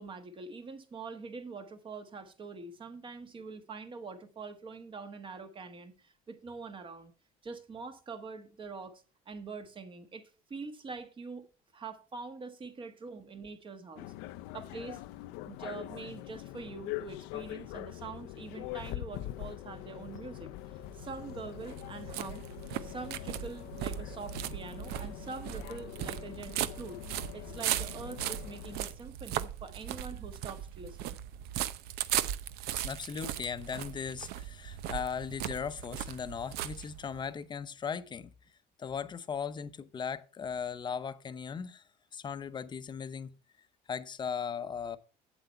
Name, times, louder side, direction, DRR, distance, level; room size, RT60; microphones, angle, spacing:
voice 1, 0.0-7.1 7.4-10.2 10.5-11.5 11.7-14.1 14.5-15.0 15.4-20.5 20.9-22.4 22.8-27.0 27.3-31.2, right 4 dB, 30° right, 1.5 m, -44 dB
sound 1, 14.0-28.8, left 16 dB, 80° left, 0.5 m, -43 dB
sound 2, 20.8-37.3, right 12 dB, 70° right, 0.7 m, -38 dB
voice 2, 32.8-38.3 38.8-41.8 42.1-43.3 43.9-45.0, left 6 dB, 25° left, 0.8 m, -38 dB
8.1 x 7.9 x 4.4 m
cardioid pair, 120°, 17 cm